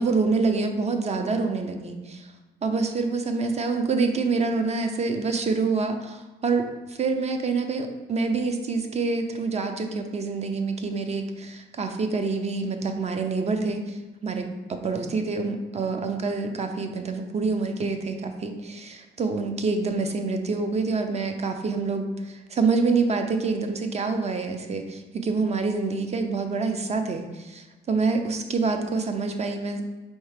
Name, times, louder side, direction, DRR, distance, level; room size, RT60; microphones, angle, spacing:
voice 1, 0.0-2.3 2.6-29.8, right 4 dB, 35° right, 6 dB, 0.5 m, -26 dB
4.5 x 3.1 x 3.3 m, 1.2 s
cardioid pair, 90°, 20 cm